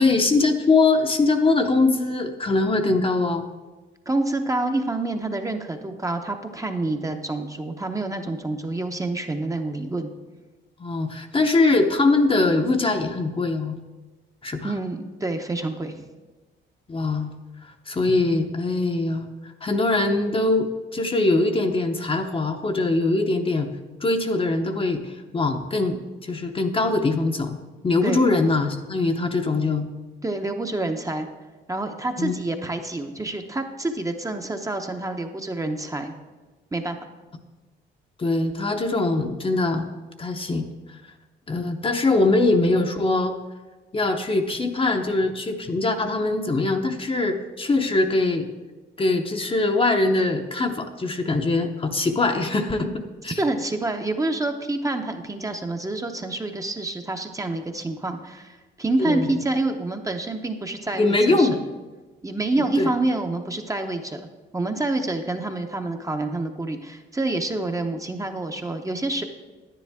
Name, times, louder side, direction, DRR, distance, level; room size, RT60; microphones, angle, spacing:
voice 1, 0.0-3.5 10.8-13.8 14.4-14.7 16.9-17.3 17.9-23.7 24.0-27.6 27.8-29.9 32.2-32.4 38.2-39.9 40.2-40.7 41.5-43.3 43.9-48.5 49.0-53.4 59.0-59.4 60.9-61.6 62.8-62.9, left 3 dB, 25° left, 5 dB, 0.8 m, -22 dB
voice 2, 4.1-10.1 14.6-16.0 28.0-28.2 30.2-31.3 31.7-36.1 36.7-37.0 53.4-61.5 62.2-64.3 64.5-69.2, right 2 dB, 15° right, 5 dB, 0.8 m, -27 dB
10.0 x 9.6 x 3.5 m, 1.2 s
cardioid pair, 90°, 20 cm